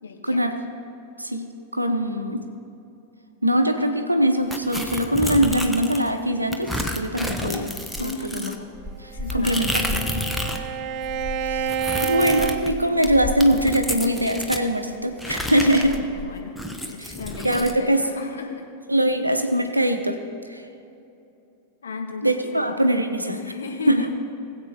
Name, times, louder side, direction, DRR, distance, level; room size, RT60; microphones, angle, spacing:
voice 1, 0.0-0.4 8.0-8.3 9.1-10.5 15.7-16.6 16.9-18.7 21.8-22.8 23.3-24.1, left 4 dB, 70° left, 3 dB, 1.2 m, -35 dB
voice 2, 1.7-2.4 3.4-7.7 8.0-8.5 9.0-9.7 11.4-11.7 12.0-16.0 17.0-17.1 17.4-18.0 18.9-20.2 20.5-20.6 22.2-23.4 23.9-24.1, equal, 85° right, 6 dB, 0.8 m, -22 dB
sound 1, 4.5-6.1 6.5-10.7 10.9-14.7 15.2-17.8, left 1 dB, 5° left, 0.9 m, -30 dB
Bowed string instrument, 9.1-13.5, right 7 dB, 40° right, 0.4 m, -29 dB
20.0 x 7.8 x 2.9 m, 2.8 s
figure-of-eight pair, 90°, 0 cm